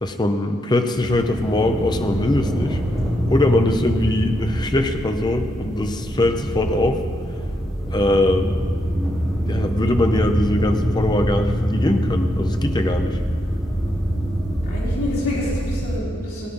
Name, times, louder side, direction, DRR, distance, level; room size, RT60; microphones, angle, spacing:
voice 1, 0.0-2.8 3.3-7.0 7.9-8.6 9.5-13.2, left 1 dB, 20° left, 6 dB, 0.6 m, -21 dB
sound 1, 0.9-16.0, equal, ahead, 3.7 m, -24 dB
voice 2, 14.6-16.5, left 2 dB, 80° left, -8 dB, 3.2 m, -28 dB
18.0 x 9.3 x 3.7 m, 2.2 s
head